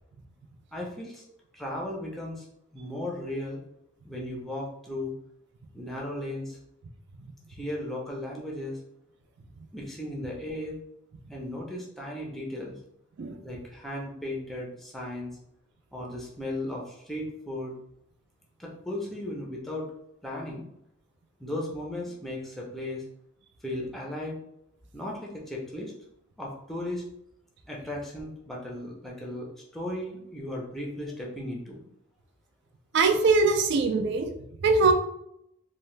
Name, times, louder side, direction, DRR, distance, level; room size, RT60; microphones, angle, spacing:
voice 1, 0.7-1.2 1.5-2.4 2.7-3.6 4.0-5.1 5.7-6.6 7.5-8.8 9.7-10.8 11.3-12.8 13.4-15.4 15.9-17.7 18.6-19.9 20.2-20.7 21.4-23.0 23.6-24.4 24.9-25.9 26.4-27.0 27.7-31.8, left 1 dB, ahead, -3 dB, 0.5 m, -36 dB
voice 2, 32.9-34.3 34.6-34.9, right 4 dB, 60° right, 5 dB, 0.4 m, -22 dB
2.7 x 2.2 x 3.1 m, 0.77 s
head